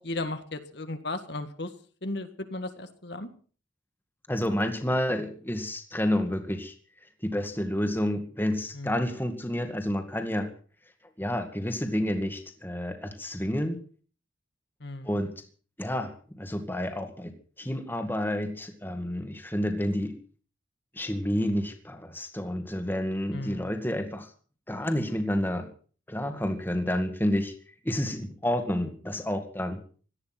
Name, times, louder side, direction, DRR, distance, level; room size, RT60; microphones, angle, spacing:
voice 1, 0.0-1.7 2.0-3.3 8.7-9.1 14.8-15.2 23.3-23.8, left 2 dB, 55° left, 8 dB, 1.7 m, -35 dB
voice 2, 4.3-6.7 7.2-10.5 11.2-13.8 15.0-15.3 15.8-20.1 20.9-24.3 24.7-25.7 26.1-27.5 27.8-29.8, left 1 dB, 10° left, 6 dB, 2.0 m, -29 dB
18.0 x 13.5 x 6.0 m, 0.42 s
head